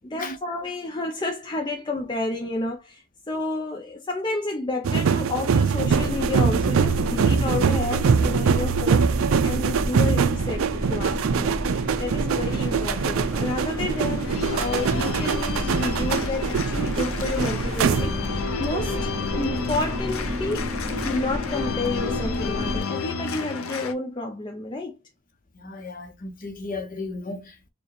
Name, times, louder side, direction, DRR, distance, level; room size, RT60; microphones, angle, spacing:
voice 1, 0.0-19.1 19.4-25.0, left 2 dB, 20° left, 0.5 m, -30 dB
sound 1, 4.8-18.4 18.7-19.0, right 6 dB, 80° right, 0.4 m, -23 dB
sound 2, 5.8-22.8, left 1 dB, 35° right, 1.7 m, -31 dB
Organ, 10.8-23.9, left 5 dB, 90° left, 0.6 m, -33 dB
voice 2, 25.5-27.7, left 3 dB, 40° left, 0.8 m, -35 dB
4.5 x 2.3 x 3.1 m
head